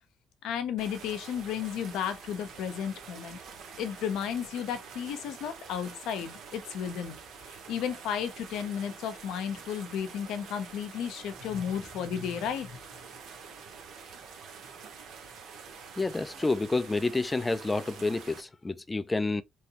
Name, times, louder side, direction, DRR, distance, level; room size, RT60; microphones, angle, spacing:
voice 1, 0.4-3.4 3.8-7.2 7.5-12.8, left 8 dB, 90° left, 0.6 m, -33 dB
sound 1, 0.8-18.4, right 6 dB, 80° right, 0.9 m, -47 dB
voice 2, 16.0-19.4, left 3 dB, 20° left, 0.4 m, -29 dB
3.1 x 2.7 x 2.7 m
cardioid pair, 90°, 0 cm